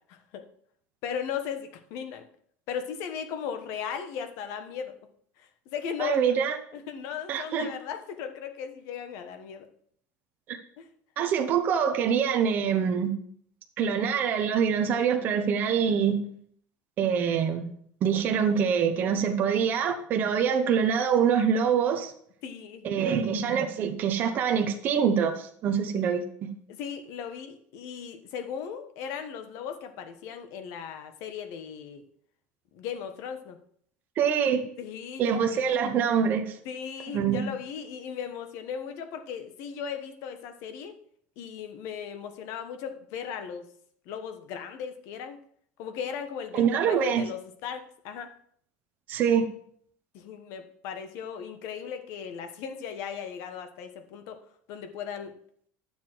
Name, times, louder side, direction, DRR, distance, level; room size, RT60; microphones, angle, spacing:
voice 1, 0.1-0.5 1.0-2.3 2.7-5.0 5.7-6.4 6.7-9.7 10.8-10.9 11.2-11.3 22.4-23.2 26.7-32.0 32.7-33.6 34.8-35.6 36.6-41.0 41.4-43.6 44.1-45.4 45.8-48.3 50.1-54.4 54.7-55.3, left 7 dB, 50° left, 8 dB, 1.2 m, -37 dB
voice 2, 6.0-6.6 7.3-7.7 10.5-10.6 11.2-13.2 13.8-16.2 17.0-17.7 18.0-22.1 22.8-26.5 34.2-34.6 35.2-36.6 37.1-37.4 46.5-47.2 49.1-49.5, right 7 dB, 30° right, 5 dB, 0.9 m, -25 dB
11.5 x 7.2 x 4.6 m, 0.64 s
cardioid pair, 175°, 6 cm